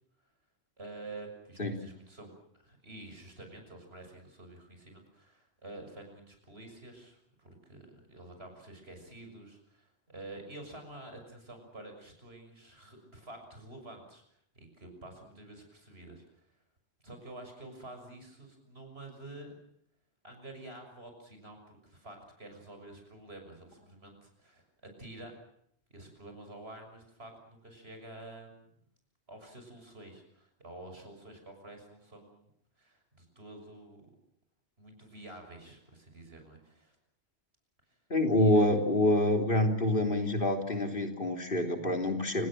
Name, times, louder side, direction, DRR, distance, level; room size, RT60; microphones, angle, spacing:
voice 1, 0.8-14.2 14.5-16.2 17.0-19.5 20.2-24.6 25.0-25.3 25.9-28.6 29.3-32.5 32.8-34.1 34.8-37.0 38.4-38.7, right 2 dB, 70° right, 4 dB, 6.8 m, -49 dB
voice 2, 38.1-42.5, left 1 dB, 55° left, 4 dB, 3.6 m, -26 dB
29.0 x 19.0 x 7.6 m, 0.70 s
omnidirectional pair, 1.1 m